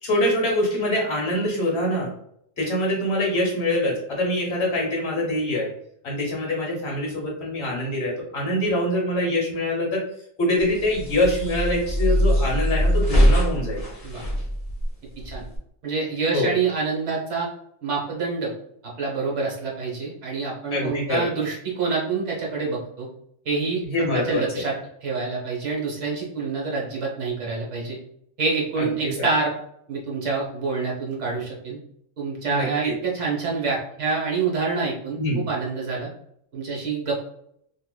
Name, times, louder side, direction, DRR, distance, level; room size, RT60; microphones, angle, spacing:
voice 1, 0.0-2.1 2.6-5.7 6.0-10.0 10.4-13.8 16.3-16.5 20.7-21.3 23.8-24.4 28.8-28.9 29.2-29.3 32.5-32.9 35.2-35.5, left 1 dB, 55° left, -1 dB, 1.2 m, -24 dB
sound 1, 10.6-15.6, equal, 35° left, 0.7 m, -22 dB
voice 2, 15.8-17.5 17.8-18.5 19.0-23.1 23.4-23.8 24.1-24.7 25.0-28.0 28.4-29.5 29.9-31.8 32.2-36.1 36.5-37.3, right 4 dB, 65° right, -3 dB, 1.2 m, -27 dB
3.6 x 2.8 x 2.2 m, 0.70 s
omnidirectional pair, 1.4 m